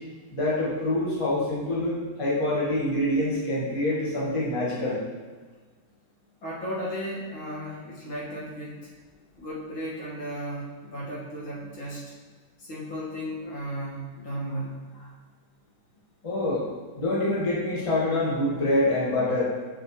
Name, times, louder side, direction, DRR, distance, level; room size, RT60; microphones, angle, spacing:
voice 1, 0.3-5.0 16.2-16.6 17.0-19.5, left 1 dB, 15° left, -7 dB, 1.5 m, -26 dB
voice 2, 6.4-8.8 9.4-12.0 12.6-15.1, equal, 70° left, -7 dB, 2.5 m, -35 dB
6.6 x 6.3 x 3.1 m, 1.4 s
omnidirectional pair, 2.2 m